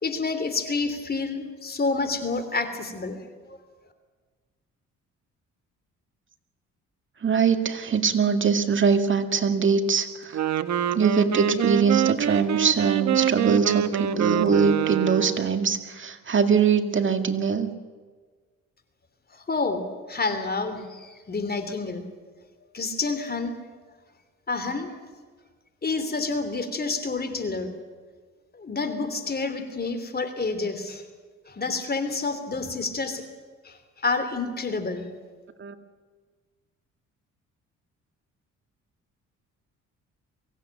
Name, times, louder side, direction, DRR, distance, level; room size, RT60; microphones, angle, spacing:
voice 1, 0.0-3.6 19.3-22.1 22.7-23.6 24.5-25.0 25.8-27.7 28.5-31.0 31.5-33.2 33.6-35.1, left 3 dB, 30° left, 9 dB, 3.2 m, -29 dB
voice 2, 7.2-10.4 10.9-17.7 35.6-35.7, right 6 dB, 40° right, 6 dB, 2.2 m, -22 dB
Wind instrument woodwind instrument, 10.2-15.5, right 10 dB, 65° right, 1.1 m, -25 dB
24.0 x 16.0 x 9.1 m, 1.4 s
cardioid pair, 90°, 30 cm